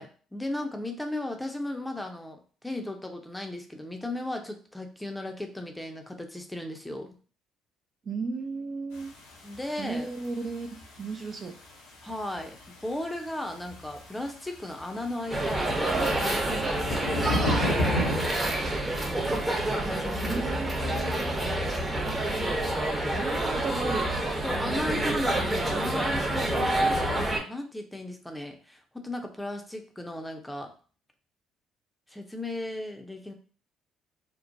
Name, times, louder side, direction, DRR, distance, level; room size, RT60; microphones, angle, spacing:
voice 1, 0.0-7.1 9.4-10.1 12.0-16.9 17.6-18.2 19.8-20.5 21.5-21.7 24.4-30.7 32.1-33.3, left 1 dB, 10° left, 4 dB, 0.6 m, -36 dB
voice 2, 8.1-9.1 9.8-10.7 11.0-11.6 20.3-21.4 23.1-24.1, right 4 dB, 45° right, 5 dB, 0.4 m, -34 dB
sound 1, 9.0-9.1 9.5-9.6 10.0-10.1 10.2-10.5 10.8-10.9 12.1-12.2 12.4-12.5 12.6-12.8 13.2-13.3 13.6-14.1 14.6-18.2, left 1 dB, 85° left, 0.6 m, -30 dB
sound 2, 15.3-27.4, right 1 dB, 20° right, 0.9 m, -28 dB
3.0 x 2.1 x 2.5 m, 0.40 s
hypercardioid pair, 55°, 0 cm